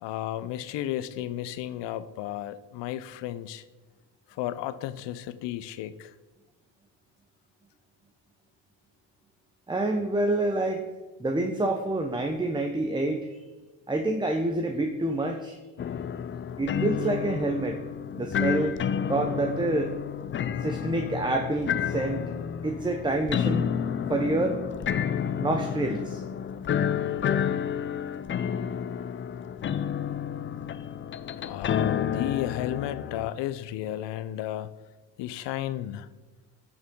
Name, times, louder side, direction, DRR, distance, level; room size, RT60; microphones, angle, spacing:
voice 1, 0.0-3.6 4.4-6.1 31.4-34.7 35.2-36.1, left 12 dB, 65° left, 14 dB, 0.7 m, -33 dB
voice 2, 9.7-10.9 11.2-13.4 13.9-15.6 16.6-17.8 18.1-18.7 19.1-19.9 20.6-22.3 22.6-23.7 24.1-24.6 25.4-26.2, right 2 dB, 10° right, 4 dB, 0.7 m, -27 dB
sound 1, 15.8-33.3, left 8 dB, 30° left, 0.4 m, -30 dB
14.0 x 6.5 x 3.7 m, 1.2 s
cardioid pair, 95°, 45 cm